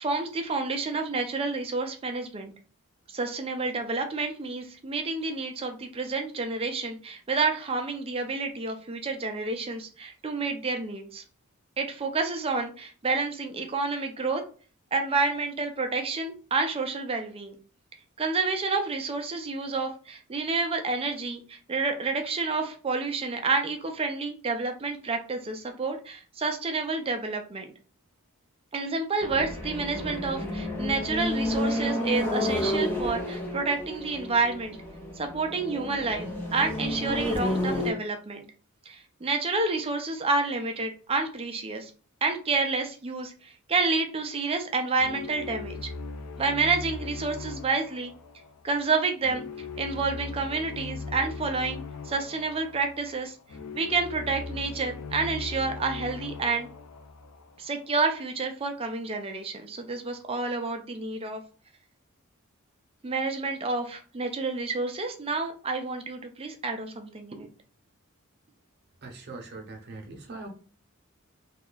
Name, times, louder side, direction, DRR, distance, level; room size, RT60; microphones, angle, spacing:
voice 1, 0.0-2.5 3.1-11.2 11.8-14.4 14.9-17.6 18.2-27.7 28.7-34.8 35.1-36.3 36.5-38.4 38.9-41.9 42.2-45.9 46.4-48.1 48.6-49.4 49.8-51.8 52.0-53.4 53.7-56.7 57.6-61.4 63.0-67.5, right 3 dB, 25° right, 5 dB, 0.4 m, -29 dB
sound 1, 29.2-37.9, left 1 dB, 10° left, 0.7 m, -30 dB
sound 2, 45.0-58.1, left 4 dB, 85° left, 0.5 m, -39 dB
voice 2, 69.0-70.5, right 3 dB, 50° right, 2 dB, 0.8 m, -41 dB
2.8 x 2.3 x 3.9 m, 0.39 s
head